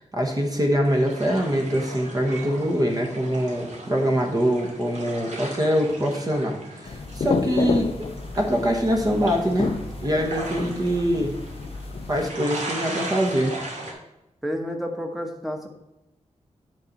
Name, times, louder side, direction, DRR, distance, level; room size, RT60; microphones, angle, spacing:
voice 1, 0.0-8.1 8.3-9.7 10.0-11.3 12.1-13.5, equal, 30° right, 1 dB, 1.2 m, -24 dB
sound 1, 0.8-13.9, right 2 dB, 75° right, 2.5 m, -38 dB
sound 2, 6.9-12.3, left 5 dB, 50° left, 0.5 m, -30 dB
voice 2, 14.4-15.7, equal, ahead, 3 dB, 1.1 m, -30 dB
9.7 x 4.1 x 5.8 m, 0.93 s
wide cardioid pair, 155°, 12 cm